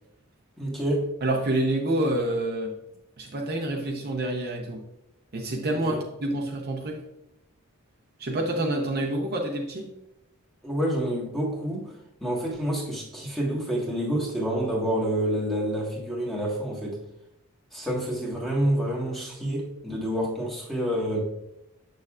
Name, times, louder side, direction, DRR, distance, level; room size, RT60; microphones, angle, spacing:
voice 1, 0.6-1.1 5.7-6.0 10.6-11.9 12.2-17.0 17.7-21.2, right 1 dB, ahead, -4 dB, 1.5 m, -28 dB
voice 2, 1.2-2.7 3.2-4.8 5.3-7.0 8.2-9.9, right 1 dB, 45° right, 0 dB, 0.8 m, -27 dB
7.4 x 6.6 x 2.4 m, 0.86 s
head